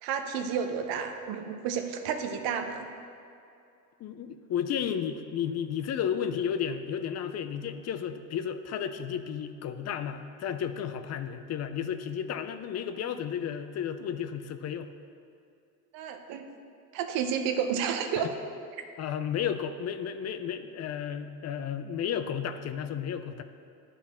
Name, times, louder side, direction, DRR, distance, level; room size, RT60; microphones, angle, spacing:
voice 1, 0.0-2.9 15.9-16.4 16.9-18.3, right 7 dB, 80° right, 7 dB, 0.8 m, -31 dB
voice 2, 4.0-14.9 19.0-23.4, left 8 dB, 45° left, 9 dB, 0.5 m, -33 dB
11.5 x 4.1 x 4.3 m, 2.5 s
cardioid pair, 110°, 36 cm